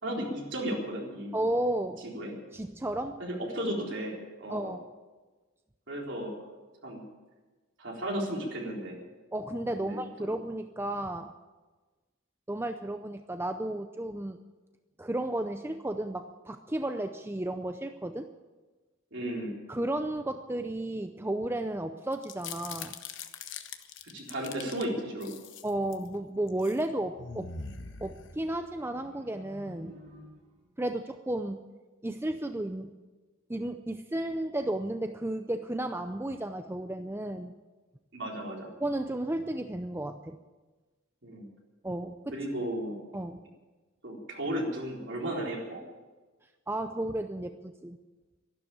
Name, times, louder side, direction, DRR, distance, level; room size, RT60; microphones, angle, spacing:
voice 1, 0.0-1.4 2.1-2.3 3.2-4.7 5.9-6.4 6.8-7.0 7.8-9.0 9.8-10.3 19.1-19.6 24.0-25.3 38.1-38.7 41.2-41.5 42.3-43.0 44.0-45.8, right 1 dB, 60° right, -1 dB, 3.9 m, -34 dB
voice 2, 1.3-2.1 2.5-3.2 4.5-4.8 9.3-11.3 12.5-14.4 15.0-18.3 19.7-23.0 25.6-27.5 28.0-29.9 30.8-31.6 32.0-33.0 33.5-37.5 38.8-40.4 41.8-42.4 43.1-43.4 46.7-48.0, right 1 dB, 10° right, 7 dB, 0.5 m, -33 dB
sound 1, 22.1-24.8 25.2-26.1 26.5-26.8 27.2-28.8, left 6 dB, 60° left, 1.1 m, -42 dB
sound 2, 28.8-30.8, left 1 dB, 40° right, 4.3 m, -51 dB
12.5 x 12.0 x 8.9 m, 1.3 s
head